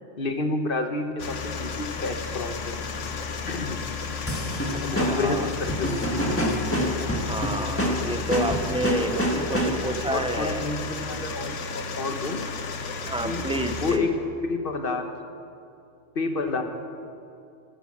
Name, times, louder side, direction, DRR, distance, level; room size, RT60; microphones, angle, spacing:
voice 1, 0.2-2.8 3.4-3.9 4.8-6.4 10.1-12.4 13.2-14.1 14.4-15.1 16.1-16.6, left 3 dB, 45° left, 6 dB, 1.3 m, -29 dB
sound 1, 1.2-14.0, left 5 dB, 70° left, 1.3 m, -33 dB
sound 2, 4.3-10.0, equal, 10° left, 1.7 m, -27 dB
voice 2, 4.7-5.5 7.2-10.6 13.0-14.1, right 1 dB, 5° right, 7 dB, 0.6 m, -30 dB
14.5 x 12.5 x 7.4 m, 2.6 s
omnidirectional pair, 1.3 m